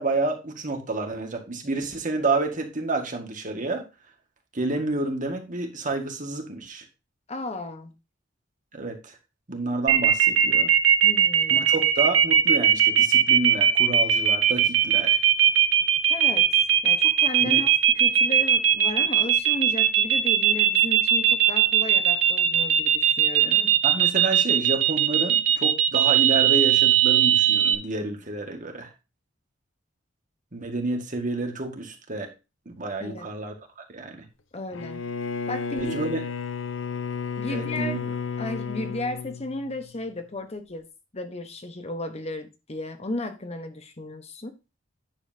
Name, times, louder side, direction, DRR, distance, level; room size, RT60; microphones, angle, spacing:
voice 1, 0.0-3.8 4.5-6.8 8.7-9.1 9.5-10.7 11.5-15.2 17.4-17.6 23.4-28.9 30.5-32.3 32.7-33.5 33.9-34.2 35.8-36.2 37.5-38.0, right 2 dB, 40° right, 1.9 m, -29 dB
voice 2, 7.3-7.9 11.0-11.7 16.1-16.5 16.8-23.6 33.0-33.3 34.5-35.0 35.5-36.0 37.4-38.0 38.4-40.9 41.1-44.6, left 2 dB, 35° left, 1.1 m, -34 dB
sound 1, 9.9-27.7, right 10 dB, 85° right, 1.0 m, -19 dB
Bowed string instrument, 34.7-40.1, left 6 dB, 80° left, 0.9 m, -32 dB
10.0 x 7.1 x 2.8 m
head